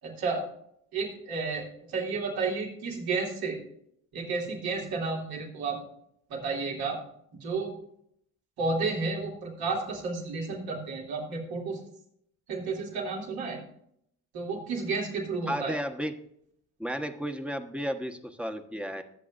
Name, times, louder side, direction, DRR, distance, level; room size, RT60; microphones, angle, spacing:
voice 1, 0.0-0.4 0.9-3.6 4.1-5.8 6.3-7.0 7.4-7.8 8.6-11.8 12.5-13.6 14.3-15.7, right 4 dB, 75° right, -2 dB, 3.0 m, -32 dB
voice 2, 15.5-16.1 16.8-19.0, equal, 5° right, 5 dB, 1.2 m, -33 dB
19.5 x 7.5 x 2.6 m, 0.71 s
hypercardioid pair, 55°, 37 cm